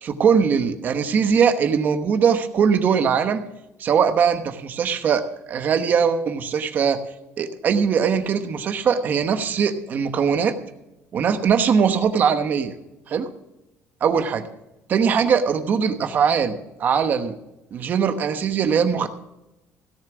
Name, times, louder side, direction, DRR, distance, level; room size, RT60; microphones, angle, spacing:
voice 1, 0.0-3.5 3.8-7.0 7.4-10.5 11.1-12.7 13.1-13.3 14.0-14.5 14.9-17.4 17.7-19.1, right 6 dB, 35° right, 8 dB, 1.0 m, -21 dB
16.5 x 7.3 x 6.2 m, 0.95 s
cardioid pair, 175°, 5 cm